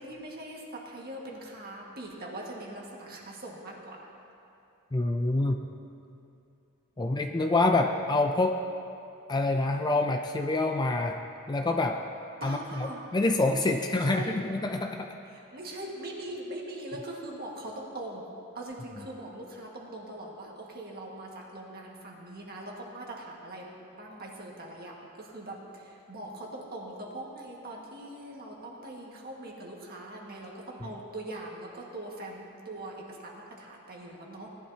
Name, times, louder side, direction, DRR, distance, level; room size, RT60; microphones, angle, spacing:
voice 1, 0.0-4.0 12.4-13.0 13.5-14.3 15.3-18.3 18.5-23.6 23.9-34.5, right 1 dB, 45° right, -2 dB, 1.8 m, -41 dB
voice 2, 4.9-5.6 7.0-8.6 9.3-11.2 11.5-12.0 12.4-15.1 30.8-30.9, left 2 dB, 20° left, 5 dB, 0.4 m, -26 dB
18.0 x 11.0 x 2.9 m, 2.7 s
head